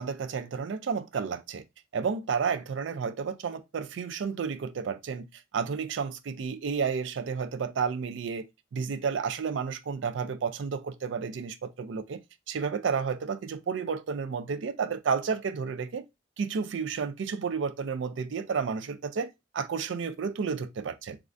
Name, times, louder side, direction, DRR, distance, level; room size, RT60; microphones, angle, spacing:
voice 1, 0.0-1.6 1.9-8.4 8.7-16.0 16.4-19.3 19.5-21.2, right 6 dB, 70° right, 0.4 m, -31 dB
3.2 x 2.4 x 2.5 m
head